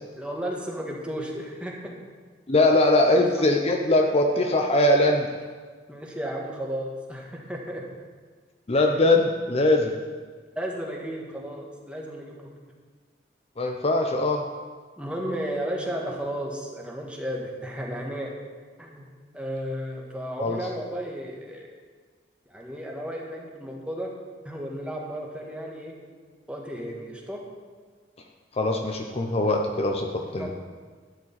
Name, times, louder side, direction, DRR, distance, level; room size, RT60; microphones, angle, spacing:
voice 1, 0.2-1.9 3.1-3.5 5.9-7.9 8.7-8.9 10.5-12.6 15.0-18.3 18.8-19.0 19.3-21.7 22.5-24.1 24.4-26.0 26.5-27.5 30.2-30.5, equal, 5° right, -1 dB, 1.6 m, -34 dB
voice 2, 2.5-5.3 8.7-9.9 13.6-14.4 20.4-20.6 28.6-30.5, left 2 dB, 35° left, 2 dB, 0.7 m, -21 dB
12.0 x 5.2 x 8.7 m, 1.5 s
head